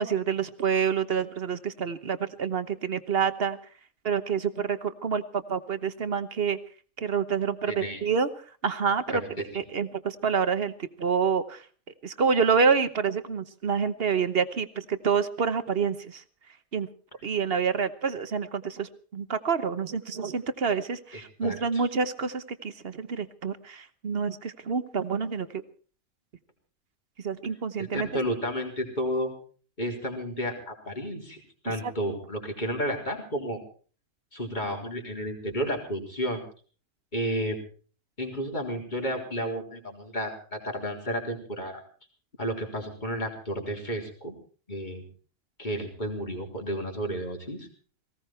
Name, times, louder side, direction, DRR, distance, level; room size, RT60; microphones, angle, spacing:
voice 1, 0.0-3.6 4.0-6.6 7.0-8.3 8.6-9.2 9.5-11.6 12.0-16.2 16.7-16.9 17.2-25.5 27.2-28.1 31.8-31.9, right 6 dB, 50° right, 12 dB, 1.2 m, -27 dB
voice 2, 7.7-8.0 9.1-9.4 21.1-21.9 27.9-29.3 29.8-33.6 34.3-36.4 37.1-37.6 38.2-41.8 42.4-44.3 44.7-45.1 45.6-47.7, equal, 35° left, 2 dB, 3.9 m, -32 dB
19.0 x 17.0 x 4.4 m, 0.41 s
omnidirectional pair, 1.4 m